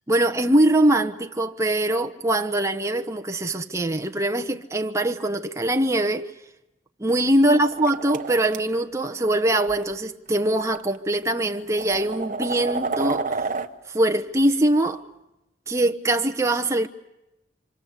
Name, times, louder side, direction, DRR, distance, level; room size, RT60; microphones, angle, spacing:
voice 1, 0.1-6.3 7.0-13.5 13.9-15.0 15.7-16.9, right 1 dB, 15° right, 0.9 m, -22 dB
sound 1, 7.5-8.6 9.7-9.8 10.8-10.9 11.4-13.7, right 4 dB, 40° right, 1.2 m, -30 dB
26.5 x 26.0 x 8.2 m
head